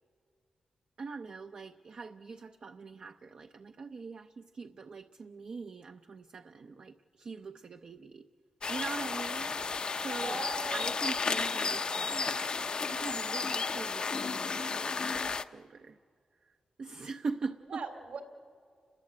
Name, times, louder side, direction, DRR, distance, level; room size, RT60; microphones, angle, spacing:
voice 1, 1.0-8.3 8.7-10.4 10.7-16.0 16.4-17.8, right 4 dB, 45° right, 8 dB, 0.7 m, -42 dB
sound 1, 8.6-15.4, left 4 dB, 40° left, 0.6 m, -33 dB
voice 2, 9.7-11.3 17.7-18.2, right 4 dB, 70° right, 6 dB, 3.4 m, -42 dB
30.0 x 21.5 x 8.6 m, 2.3 s
wide cardioid pair, 145°, 2 cm